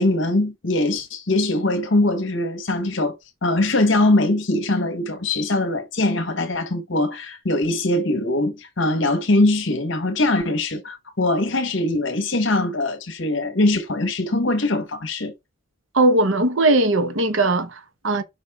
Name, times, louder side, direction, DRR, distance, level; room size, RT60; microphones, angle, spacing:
voice 1, 0.0-3.2 3.4-15.3, left 2 dB, 65° left, 1.3 m, -22 dB
voice 2, 15.9-18.2, right 2 dB, 75° right, 1.0 m, -19 dB
6.0 x 5.5 x 3.5 m
head